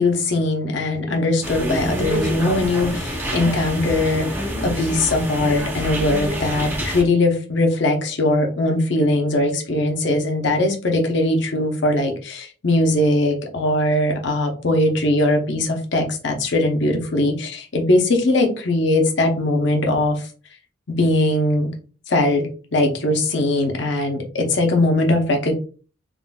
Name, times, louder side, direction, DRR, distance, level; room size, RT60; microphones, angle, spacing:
voice 1, 0.0-20.3 20.9-21.7 22.1-25.5, left 1 dB, 60° left, 3 dB, 0.7 m, -20 dB
sound 1, 1.4-7.0, equal, 10° right, 0.6 m, -27 dB
3.7 x 2.4 x 2.2 m, 0.38 s
head